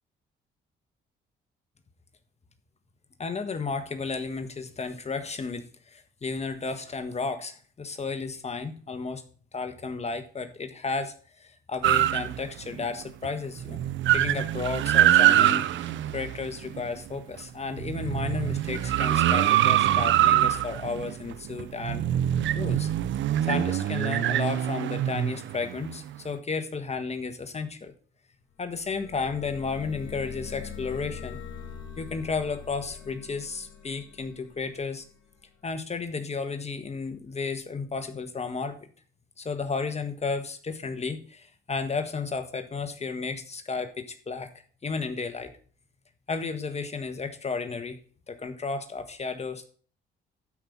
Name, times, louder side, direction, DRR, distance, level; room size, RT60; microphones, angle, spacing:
voice 1, 3.2-9.2 9.5-13.8 14.1-22.0 22.5-22.9 23.5-27.9 28.6-31.4 32.0-35.0 35.6-38.9 39.4-44.5 44.8-45.5 46.3-48.0 48.3-49.7, left 4 dB, 35° left, 8 dB, 1.6 m, -33 dB
sound 1, 11.8-12.8 13.2-13.3 13.6-17.2 17.7-26.2, right 12 dB, 70° right, 0.6 m, -24 dB
sound 2, 28.6-35.3, left 6 dB, 80° left, 2.5 m, -43 dB
12.5 x 5.6 x 5.5 m, 0.43 s
cardioid pair, 90°, 20 cm